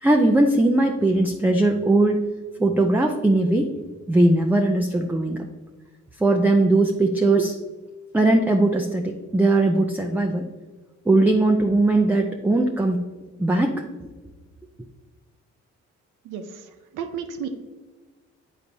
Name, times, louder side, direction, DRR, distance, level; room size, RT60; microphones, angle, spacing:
voice 1, 0.0-2.2 2.6-3.7 4.1-5.5 6.2-7.6 8.1-10.4 11.1-13.0 13.4-14.1, right 2 dB, 5° right, 2 dB, 0.4 m, -19 dB
voice 2, 16.2-17.5, right 7 dB, 85° right, 6 dB, 0.6 m, -33 dB
8.7 x 4.1 x 2.7 m, 1.3 s
cardioid pair, 90°, 30 cm